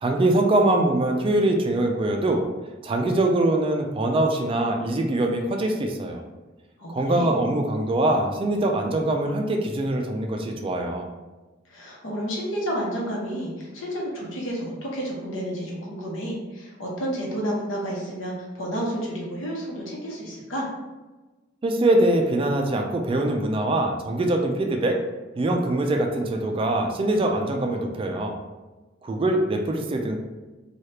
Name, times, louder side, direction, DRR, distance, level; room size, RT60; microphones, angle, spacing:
voice 1, 0.0-2.4 2.8-6.2 6.9-11.1 21.6-25.0 25.4-28.4 29.0-30.2, right 1 dB, 30° right, 3 dB, 0.3 m, -23 dB
voice 2, 6.8-7.3 11.7-20.7, equal, 75° left, -3 dB, 0.9 m, -30 dB
3.2 x 2.3 x 2.8 m, 1.2 s
head